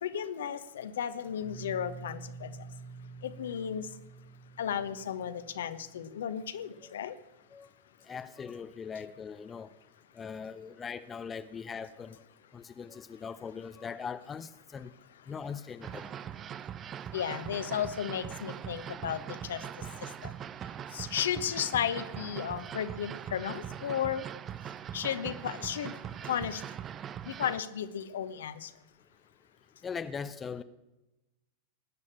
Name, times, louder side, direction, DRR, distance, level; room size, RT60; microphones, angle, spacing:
voice 1, 0.0-2.5 3.2-3.9 4.6-7.1 17.1-19.2 19.5-19.6 20.2-20.3 20.9-24.2 24.9-25.9 26.3-26.6 27.3-28.7, left 9 dB, 60° left, 1.1 m, -34 dB
sound 1, 1.4-6.3, right 4 dB, 80° left, 2.4 m, -48 dB
voice 2, 8.0-9.7 10.1-12.2 12.5-14.9 15.3-16.1 29.8-30.6, left 6 dB, 20° left, 0.7 m, -40 dB
sound 2, 15.8-27.6, right 9 dB, 25° right, 0.5 m, -41 dB
19.5 x 8.4 x 8.7 m
figure-of-eight pair, 90°, 0 cm